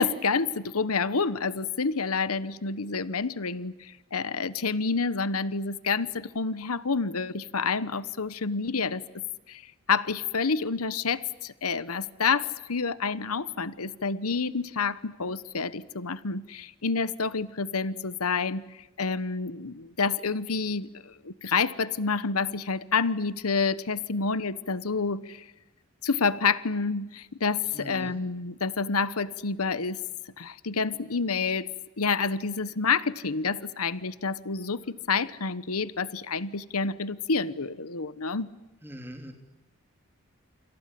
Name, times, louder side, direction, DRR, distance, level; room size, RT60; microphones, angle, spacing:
voice 1, 0.0-25.4 26.0-30.0 30.4-31.7 32.0-38.5, left 4 dB, 90° left, 17 dB, 1.1 m, -28 dB
voice 2, 27.7-28.2 38.8-39.3, equal, 10° right, 5 dB, 3.4 m, -41 dB
28.0 x 27.5 x 7.6 m, 1.1 s
head